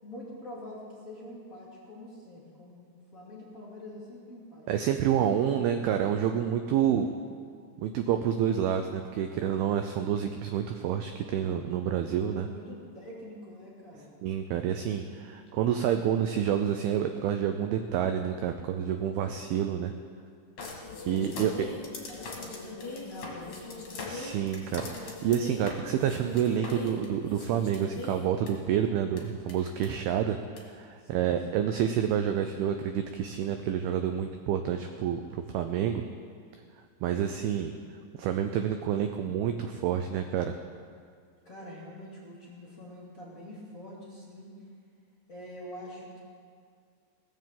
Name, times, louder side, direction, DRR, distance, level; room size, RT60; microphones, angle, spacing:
voice 1, 0.0-2.8 3.1-4.7 6.8-7.4 11.9-14.1 20.9-23.8 31.0-31.7 41.4-44.5 45.3-46.2, left 1 dB, 25° left, -5 dB, 2.3 m, -45 dB
voice 2, 4.7-7.1 7.8-12.5 14.2-19.9 21.1-21.7 24.1-30.4 30.7-36.0 37.0-37.7 38.1-40.5, right 9 dB, 85° right, 7 dB, 2.2 m, -28 dB
sound 1, 20.6-28.5 29.2-29.3 29.5-29.9 30.6-30.7, left 3 dB, 45° left, 2.6 m, -40 dB
18.5 x 7.4 x 7.5 m, 2.1 s
omnidirectional pair, 5.0 m